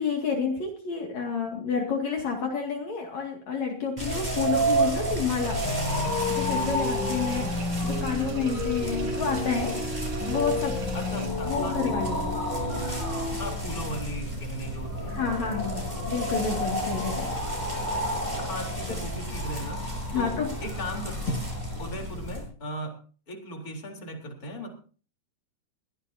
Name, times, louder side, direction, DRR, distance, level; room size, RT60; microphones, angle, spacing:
voice 1, 0.0-5.6 6.3-7.4 7.8-9.8 10.3-10.8 11.5-12.4 15.1-15.8 16.1-17.3 20.1-20.5, left 5 dB, 60° left, 1 dB, 3.5 m, -29 dB
sound 1, 4.0-22.4, right 1 dB, 5° right, 6.7 m, -31 dB
sound 2, 5.4-11.3, right 4 dB, 70° right, 5.2 m, -44 dB
sound 3, 5.6-13.5, left 3 dB, 35° right, 8.7 m, -32 dB
voice 2, 10.9-12.1 13.3-15.7 18.4-21.4 21.8-23.0 23.3-24.7, left 1 dB, 25° left, 1 dB, 4.2 m, -37 dB
22.0 x 16.5 x 2.8 m, 0.41 s
omnidirectional pair, 3.6 m